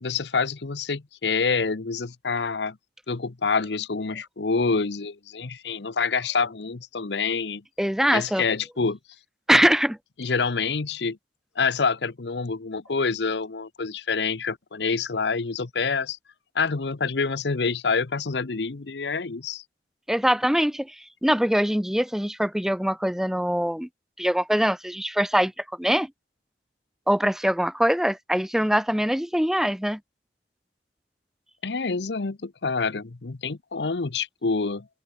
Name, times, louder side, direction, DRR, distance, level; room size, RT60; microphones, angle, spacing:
voice 1, 0.0-2.8 3.1-7.6 8.1-9.0 10.2-11.2 11.6-16.2 16.5-19.6 31.6-34.9, left 4 dB, 80° left, 0.8 m, -27 dB
voice 2, 7.8-8.4 9.5-10.0 20.1-20.9 21.2-23.9 24.2-25.5 25.8-26.1 27.1-30.0, equal, 5° right, 0.6 m, -23 dB
head